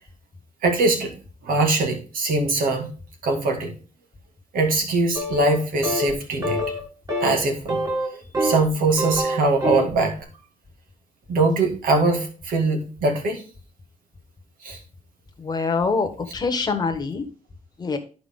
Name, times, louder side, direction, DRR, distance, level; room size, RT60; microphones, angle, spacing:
voice 1, 0.6-1.2 1.4-2.9 3.2-3.7 4.5-6.7 7.2-7.8 8.1-10.3 11.3-13.4 14.6-14.8, right 3 dB, 75° right, 3 dB, 2.0 m, -22 dB
sound 1, 5.2-5.6 5.8-6.1 6.4-6.8 7.1-7.3 7.7-8.7 8.9-9.9, equal, 25° right, 2.2 m, -25 dB
voice 2, 15.4-17.2 17.8-18.0, left 4 dB, 30° left, 6 dB, 1.2 m, -24 dB
11.5 x 4.8 x 3.6 m, 0.37 s
cardioid pair, 135°, 15 cm